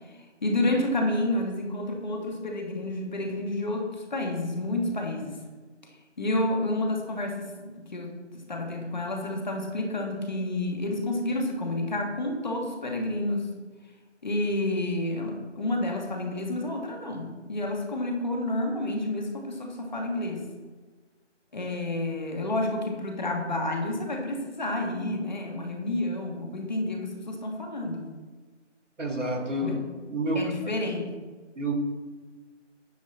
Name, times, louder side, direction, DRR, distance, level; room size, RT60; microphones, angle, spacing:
voice 1, 0.4-5.4 6.2-13.5 14.2-20.4 21.5-28.0 29.6-29.7 30.3-31.0, left 1 dB, 35° left, 2 dB, 1.4 m, -30 dB
voice 2, 29.0-29.8 30.1-30.5 31.6-31.7, right 1 dB, 80° right, 4 dB, 1.9 m, -28 dB
9.5 x 7.3 x 4.0 m, 1.4 s
figure-of-eight pair, 165°, 37 cm